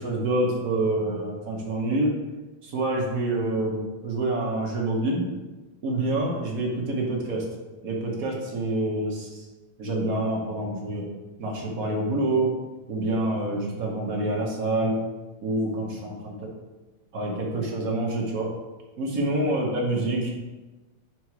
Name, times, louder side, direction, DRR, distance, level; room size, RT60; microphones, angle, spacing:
voice 1, 0.0-2.1 2.6-5.3 5.8-7.4 7.8-9.5 9.8-11.1 11.4-12.5 12.9-15.0 15.4-16.3 17.1-18.5 19.0-20.3, right 2 dB, 55° right, -1 dB, 1.2 m, -27 dB
4.7 x 4.6 x 4.6 m, 1.2 s
omnidirectional pair, 2.1 m